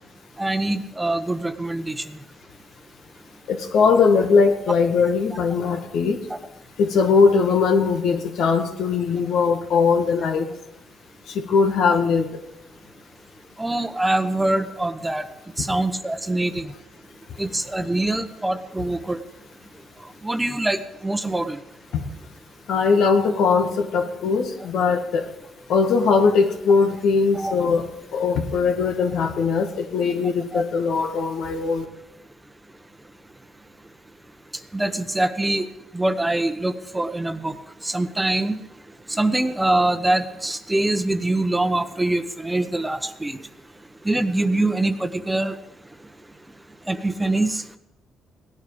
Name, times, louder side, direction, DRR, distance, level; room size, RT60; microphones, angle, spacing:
voice 1, 0.4-1.9 13.6-15.2 15.6-16.6 17.4-19.2 20.2-20.8 21.0-21.6 27.3-27.6 30.5-30.6 34.7-35.7 35.9-37.5 37.8-38.5 39.2-43.4 44.1-45.5 46.9-47.6, right 2 dB, 10° right, 9 dB, 1.0 m, -23 dB
voice 2, 3.5-6.2 6.8-10.5 11.3-12.3 21.9-22.0 22.7-25.3 25.7-27.9 28.1-31.8, left 5 dB, 80° left, 5 dB, 1.8 m, -20 dB
17.5 x 10.5 x 5.1 m, 0.94 s
cardioid pair, 90°, 0 cm